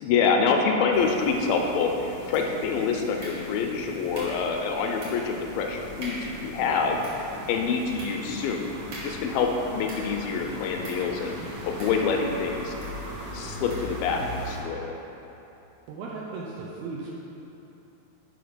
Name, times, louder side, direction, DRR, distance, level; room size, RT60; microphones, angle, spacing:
voice 1, 0.0-7.0 7.5-8.6 9.0-11.3 11.6-12.7 13.3-14.9, left 5 dB, 80° left, 2 dB, 2.3 m, -26 dB
sound 1, 0.9-14.6, equal, 65° right, 1.6 m, -40 dB
sound 2, 2.3-2.7 3.2-3.8 4.1-4.5 5.0-5.4 5.7-5.8 6.0-6.4 6.8-10.3 10.8-11.2 11.8-12.4 12.8-13.0 13.7-14.0, right 1 dB, 50° right, 1.9 m, -43 dB
voice 2, 15.9-17.1, right 3 dB, 85° right, -3 dB, 2.4 m, -36 dB
7.1 x 5.4 x 5.0 m, 3.0 s
omnidirectional pair, 4.3 m